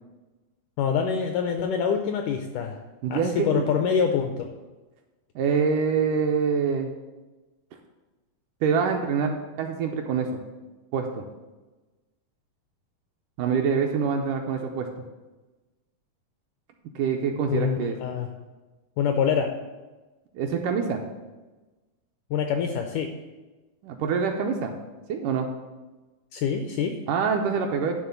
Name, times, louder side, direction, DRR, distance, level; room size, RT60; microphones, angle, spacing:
voice 1, 0.8-2.8 3.1-4.5 17.5-18.3 19.0-19.5 22.3-23.1 26.3-27.0, left 7 dB, 80° left, 5 dB, 1.8 m, -25 dB
voice 2, 3.0-3.7 5.4-6.9 8.6-10.3 10.9-11.2 13.4-14.9 17.0-18.0 20.3-21.0 23.8-24.7 25.1-25.5 27.1-28.0, right 6 dB, 80° right, 3 dB, 1.9 m, -25 dB
11.0 x 3.7 x 6.9 m, 1.2 s
omnidirectional pair, 4.2 m